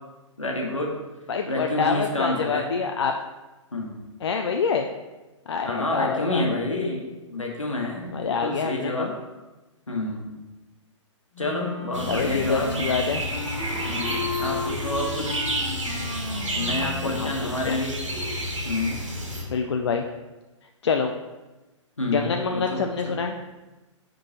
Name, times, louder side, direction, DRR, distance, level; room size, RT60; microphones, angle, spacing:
voice 1, 0.4-0.9 1.5-2.7 3.7-4.0 5.6-9.2 9.9-10.3 11.4-12.7 13.8-15.4 16.5-18.0 18.6-19.0 22.0-23.2, left 2 dB, 80° left, 0 dB, 1.3 m, -28 dB
voice 2, 1.3-3.1 4.2-4.9 5.5-6.4 8.1-9.1 12.1-13.2 16.7-17.8 19.5-20.1 20.8-21.1 22.1-23.4, left 5 dB, 60° left, 4 dB, 0.4 m, -26 dB
Wind instrument woodwind instrument, 11.3-17.2, left 3 dB, 30° left, 1.1 m, -34 dB
sound 1, 11.9-19.4, right 1 dB, 70° right, 1.6 m, -30 dB
9.3 x 3.7 x 2.9 m, 1.1 s
figure-of-eight pair, 120°, 16 cm